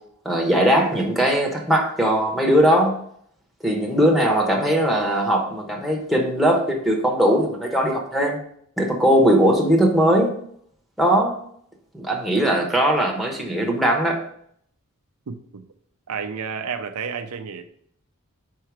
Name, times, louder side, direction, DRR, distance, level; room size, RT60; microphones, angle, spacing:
voice 1, 0.2-2.9 3.6-8.4 8.8-10.3 11.0-11.4 11.9-14.2, equal, ahead, 0 dB, 1.0 m, -19 dB
voice 2, 15.3-15.6 16.1-17.7, right 6 dB, 80° right, 7 dB, 0.5 m, -31 dB
4.6 x 4.5 x 4.7 m, 0.66 s
head